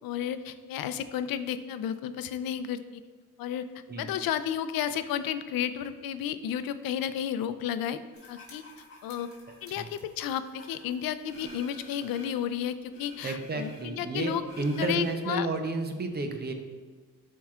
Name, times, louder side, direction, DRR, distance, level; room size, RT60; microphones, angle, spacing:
voice 1, 0.0-3.0 3.4-3.6 4.0-8.0 8.3-8.6 9.0-9.3 9.6-14.4 14.8-15.5, left 9 dB, 85° left, 12 dB, 0.5 m, -32 dB
sound 1, 8.1-12.5 12.9-15.1, left 1 dB, 40° left, 1.8 m, -50 dB
voice 2, 13.2-16.5, right 2 dB, 30° right, 5 dB, 0.6 m, -31 dB
11.5 x 4.6 x 2.4 m, 1.4 s
cardioid pair, 135°, 34 cm